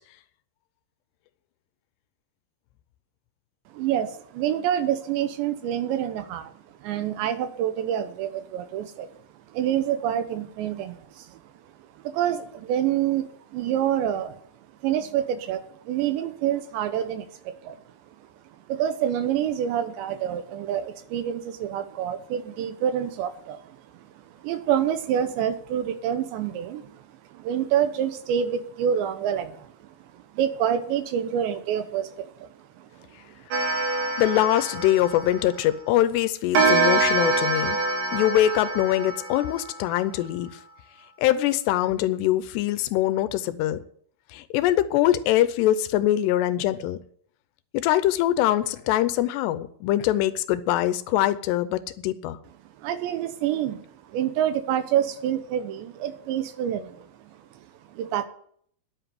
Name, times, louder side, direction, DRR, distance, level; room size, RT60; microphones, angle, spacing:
voice 1, 3.7-9.1 9.5-11.4 12.0-14.4 14.8-17.8 18.7-27.0 27.3-32.5 32.8-32.9 33.2-33.4 52.8-53.8 54.1-57.4 57.9-58.2, right 10 dB, 90° right, 3.4 m, -27 dB
Clock, 33.5-35.8 36.5-39.9, right 3 dB, 60° right, 2.7 m, -25 dB
voice 2, 34.2-37.8 38.1-40.6 41.2-43.8 44.3-47.0 47.7-52.4, left 13 dB, 80° left, 2.8 m, -23 dB
10.5 x 8.0 x 9.4 m
omnidirectional pair, 5.0 m